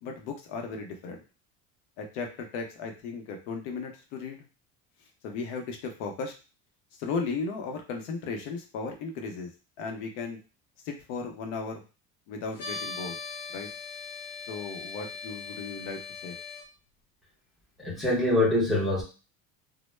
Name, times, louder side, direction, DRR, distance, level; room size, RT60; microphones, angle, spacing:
voice 1, 0.0-1.2 2.0-4.4 5.2-6.3 7.0-9.5 9.8-10.4 10.8-11.8 12.3-13.2 13.5-13.7 14.5-16.4, left 4 dB, 85° left, 3 dB, 0.7 m, -36 dB
sound 1, 12.6-16.6, left 4 dB, 50° left, 0.7 m, -39 dB
voice 2, 17.8-19.0, left 1 dB, ahead, -6 dB, 0.6 m, -24 dB
2.1 x 2.0 x 3.1 m, 0.32 s
cardioid pair, 165°, 34 cm